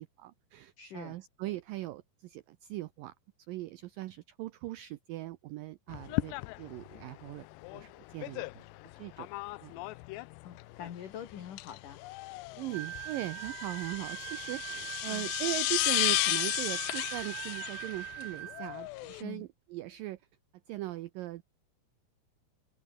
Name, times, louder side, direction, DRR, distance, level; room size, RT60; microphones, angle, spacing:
voice 1, 0.0-3.1 3.5-7.5 7.7-8.7 9.0-9.3 9.6-9.7 12.6-20.2 20.7-21.4, right 16 dB, 85° right, 2.0 m, -40 dB
voice 2, 0.8-1.2 10.4-12.0 15.1-15.3 19.2-19.5, left 9 dB, 55° left, 3.3 m, -44 dB
sound 1, 5.9-19.2, left 21 dB, 90° left, 2.8 m, -35 dB
sound 2, 12.7-18.8, right 14 dB, 70° right, 2.3 m, -41 dB
omnidirectional pair, 4.9 m